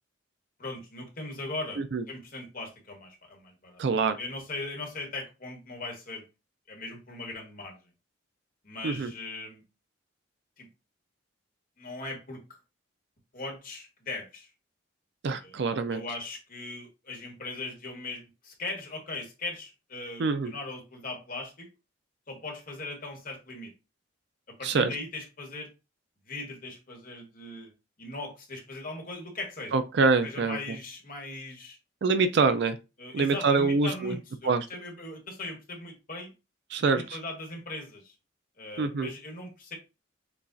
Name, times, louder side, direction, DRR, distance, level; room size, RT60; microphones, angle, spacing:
voice 1, 0.6-1.8 2.1-3.8 4.2-6.2 6.7-7.8 8.6-9.6 10.6-10.7 11.8-12.4 13.3-14.5 15.4-15.5 15.9-21.7 22.3-23.7 24.6-25.7 26.3-27.7 28.0-29.8 30.2-31.8 33.0-36.3 36.8-38.1 38.6-39.8, left 2 dB, 45° left, 1.4 m, -39 dB
voice 2, 3.8-4.2 8.8-9.1 15.2-16.0 20.2-20.5 24.6-24.9 29.7-30.6 32.0-32.8 33.1-34.1 34.4-34.7 36.7-37.2 38.8-39.1, right 4 dB, 55° right, 0.4 m, -25 dB
6.9 x 2.4 x 2.5 m
head